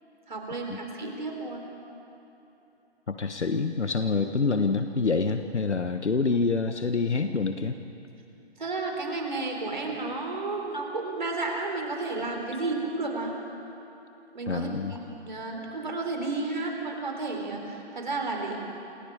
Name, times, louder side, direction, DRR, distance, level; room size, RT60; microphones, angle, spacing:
voice 1, 0.3-1.7 8.6-13.4 14.3-18.6, right 3 dB, 45° right, 1 dB, 4.4 m, -32 dB
voice 2, 3.1-7.7 14.5-14.9, left 4 dB, 80° left, 7 dB, 1.4 m, -26 dB
28.0 x 27.5 x 5.0 m, 3.0 s
figure-of-eight pair, 180°, 34 cm